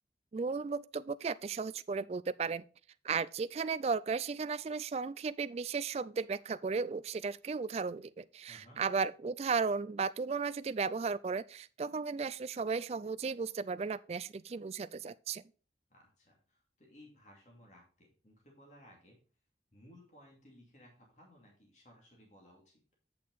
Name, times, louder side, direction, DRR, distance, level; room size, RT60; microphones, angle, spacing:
voice 1, 0.3-2.6 3.0-15.4, right 5 dB, 35° right, 0.3 m, -35 dB
voice 2, 8.5-8.8 15.9-19.2 19.7-22.8, left 1 dB, 40° left, 2.6 m, -59 dB
8.6 x 6.5 x 4.0 m
head